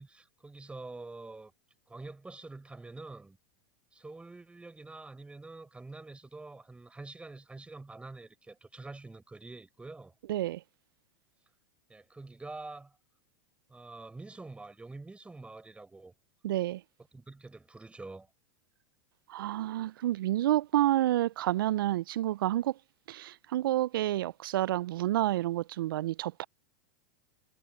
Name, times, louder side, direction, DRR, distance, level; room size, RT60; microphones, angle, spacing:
voice 1, 0.0-1.5 1.9-3.4 3.9-10.1 11.9-12.9 13.7-16.1 17.1-18.3, right 3 dB, 10° right, 4.9 m, -46 dB
voice 2, 10.3-10.6 16.4-16.8 19.3-22.8 23.1-26.5, right 14 dB, 75° right, 0.4 m, -29 dB
hypercardioid pair, 105°, 12 cm